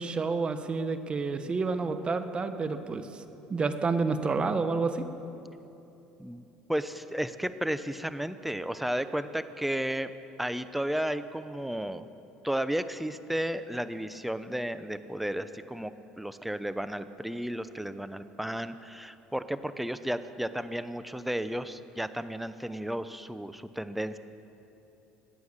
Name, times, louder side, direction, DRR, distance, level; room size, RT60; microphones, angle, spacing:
voice 1, 0.0-3.2 3.5-5.1, right 4 dB, 30° right, 9 dB, 1.2 m, -29 dB
voice 2, 6.2-10.1 10.4-12.1 12.4-24.2, right 1 dB, 5° right, 12 dB, 0.7 m, -33 dB
24.0 x 9.2 x 6.6 m, 3.0 s
supercardioid pair, 90°, 3 cm